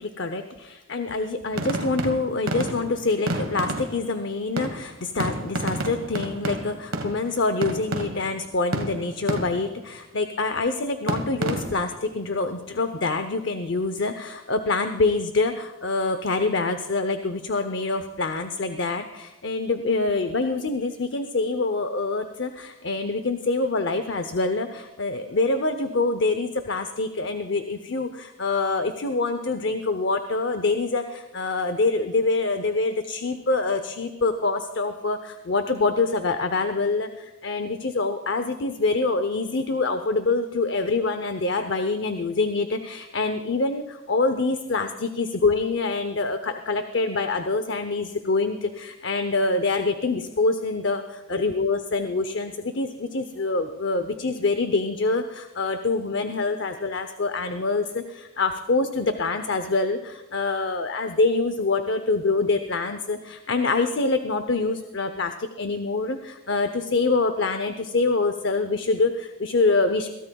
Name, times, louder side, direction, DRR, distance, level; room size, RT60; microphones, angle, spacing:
voice 1, 0.0-70.1, left 3 dB, 55° left, 8 dB, 0.7 m, -25 dB
sound 1, 1.5-4.2 4.6-8.4 8.7-9.8 11.1-12.0, right 1 dB, 75° right, 1.4 m, -30 dB
22.0 x 16.5 x 2.3 m, 1.1 s
head